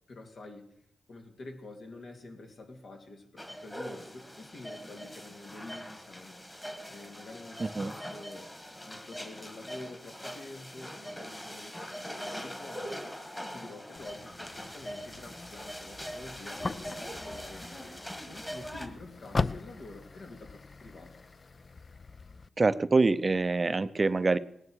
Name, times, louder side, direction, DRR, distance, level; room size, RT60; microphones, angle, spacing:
voice 1, 0.1-0.6 1.1-6.4 6.9-8.5 8.9-13.0 13.4-21.1, left 2 dB, 70° left, 4 dB, 2.6 m, -48 dB
sound 1, 3.4-18.9, equal, 15° left, 1.9 m, -42 dB
voice 2, 7.6-7.9 22.6-24.4, right 3 dB, 35° right, 14 dB, 0.6 m, -25 dB
sound 2, 14.0-22.5, left 3 dB, 40° left, 0.5 m, -39 dB
18.5 x 9.7 x 6.4 m, 0.75 s
cardioid pair, 80°, 0 cm